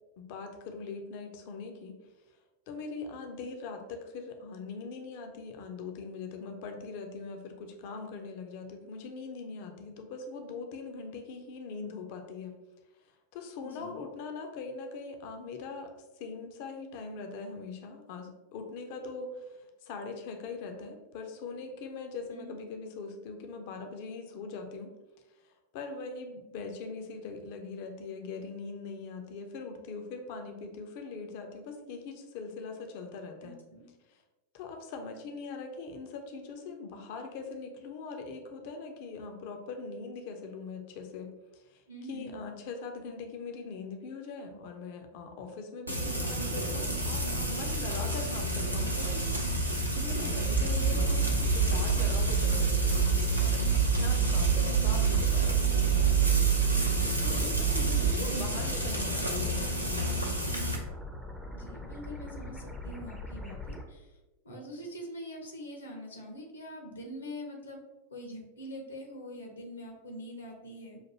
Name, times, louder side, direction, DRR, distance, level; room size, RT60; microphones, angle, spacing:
voice 1, 0.2-1.9 2.7-12.5 13.3-24.9 25.4-33.6 34.1-34.2 34.5-41.8 42.1-56.0 57.2-60.0, left 4 dB, 50° left, 4 dB, 0.5 m, -41 dB
voice 2, 13.6-14.0 22.3-22.5 33.4-33.9 41.9-42.5 50.6-50.7 56.5-57.0 58.2-58.4 61.5-64.2 64.4-67.8 68.1-71.0, equal, 75° left, 2 dB, 0.9 m, -44 dB
Frying (food), 45.9-60.8, right 1 dB, 90° right, 0.6 m, -30 dB
sound 1, 50.3-63.8, left 1 dB, ahead, 0.5 m, -45 dB
sound 2, 50.5-58.1, right 7 dB, 45° right, 0.5 m, -27 dB
5.6 x 2.5 x 2.9 m, 1.1 s
figure-of-eight pair, 90°, 0 cm